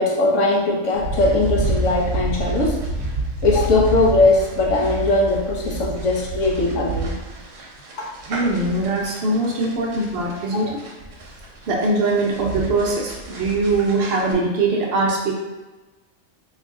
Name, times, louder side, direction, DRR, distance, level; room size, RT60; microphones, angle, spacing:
voice 1, 0.0-2.8 3.4-7.1 8.0-8.1 10.5-10.6, left 2 dB, 70° left, -2 dB, 1.1 m, -19 dB
sound 1, 0.9-14.3, right 2 dB, 75° right, 1.1 m, -29 dB
voice 2, 8.3-10.8 11.7-15.3, right 2 dB, 55° right, -1 dB, 0.8 m, -21 dB
3.1 x 2.3 x 3.6 m, 1.1 s
omnidirectional pair, 1.4 m